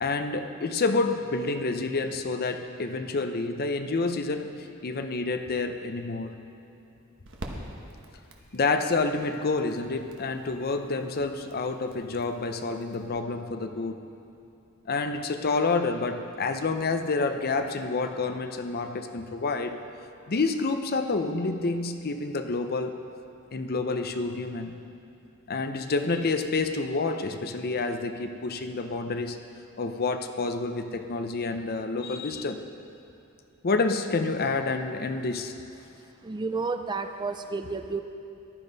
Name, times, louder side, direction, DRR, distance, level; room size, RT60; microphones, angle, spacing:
voice 1, 0.0-4.5 4.8-6.3 8.5-14.0 14.9-19.8 20.3-22.9 23.5-24.8 25.5-29.4 29.8-32.6 33.6-35.5, left 3 dB, 45° left, 7 dB, 0.6 m, -28 dB
sound 1, 5.2-13.1, right 1 dB, 60° right, 1.2 m, -47 dB
voice 2, 36.2-38.0, right 4 dB, 20° right, 7 dB, 0.4 m, -31 dB
15.0 x 11.0 x 4.0 m, 2.7 s
head